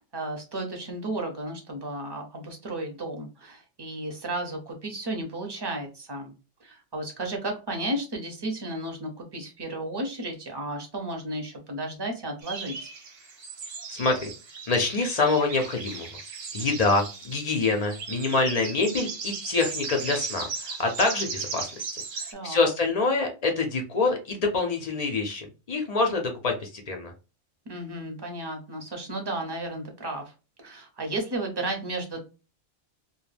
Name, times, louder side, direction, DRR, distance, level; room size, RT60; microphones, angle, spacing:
voice 1, 0.0-6.3 6.6-12.9 22.3-22.6 27.7-30.2 30.6-32.2, right 1 dB, 30° right, 2 dB, 0.5 m, -33 dB
sound 1, 12.4-22.3, right 5 dB, 60° right, 0.7 m, -37 dB
voice 2, 13.9-14.3 14.7-16.1 16.5-27.1, left 3 dB, 55° left, 2 dB, 0.4 m, -26 dB
2.2 x 2.1 x 3.2 m, 0.31 s
omnidirectional pair, 1.2 m